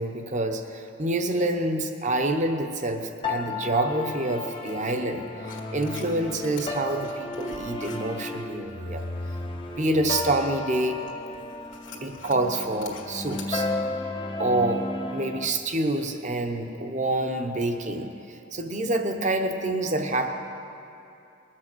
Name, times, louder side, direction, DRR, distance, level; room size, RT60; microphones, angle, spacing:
voice 1, 0.0-5.3 5.7-9.1 9.8-11.0 12.0-13.7 14.4-14.8 15.1-20.3, right 2 dB, 40° right, 5 dB, 0.9 m, -27 dB
sound 1, 3.2-15.5, left 2 dB, 25° left, 0.7 m, -33 dB
sound 2, 5.4-13.6, left 3 dB, 70° left, 1.8 m, -46 dB
20.5 x 7.5 x 6.2 m, 2.7 s
head